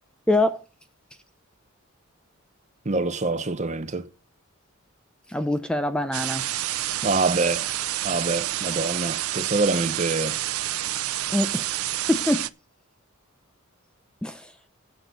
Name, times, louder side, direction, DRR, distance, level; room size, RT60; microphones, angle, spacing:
voice 1, 0.3-0.6 5.3-6.5 11.3-11.7 12.1-12.5 14.2-14.5, left 1 dB, 5° left, 0.5 m, -24 dB
voice 2, 2.8-4.1 7.0-7.7 8.0-10.4, right 3 dB, 35° right, 0.9 m, -25 dB
sound 1, 6.1-12.5, right 14 dB, 90° right, 0.6 m, -28 dB
8.1 x 6.6 x 8.2 m
head